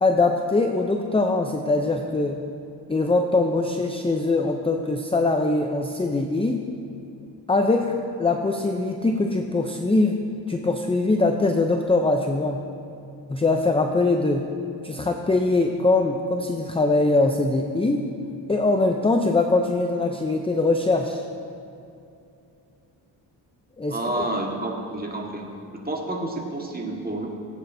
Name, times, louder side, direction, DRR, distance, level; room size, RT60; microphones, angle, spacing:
voice 1, 0.0-2.4 2.9-6.6 7.5-10.2 10.5-12.6 13.3-14.5 14.8-18.0 18.5-21.2 23.8-24.3, left 2 dB, 15° left, 3 dB, 0.6 m, -22 dB
voice 2, 23.9-25.5 25.7-27.3, right 1 dB, 20° right, 0 dB, 1.6 m, -29 dB
18.5 x 8.8 x 2.7 m, 2.6 s
cardioid pair, 80°, 45 cm